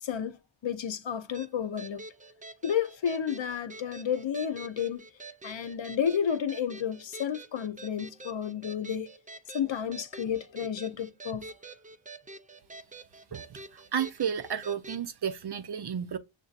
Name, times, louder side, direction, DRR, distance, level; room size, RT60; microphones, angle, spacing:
voice 1, 0.0-2.0 2.6-5.0 5.4-9.1 9.5-11.5, left 8 dB, 65° left, 0.7 m, -31 dB
sound 1, 1.3-15.0, right 2 dB, 20° right, 0.3 m, -47 dB
voice 2, 13.3-16.2, right 8 dB, 55° right, 0.6 m, -32 dB
6.7 x 2.6 x 2.4 m
wide cardioid pair, 55°, 48 cm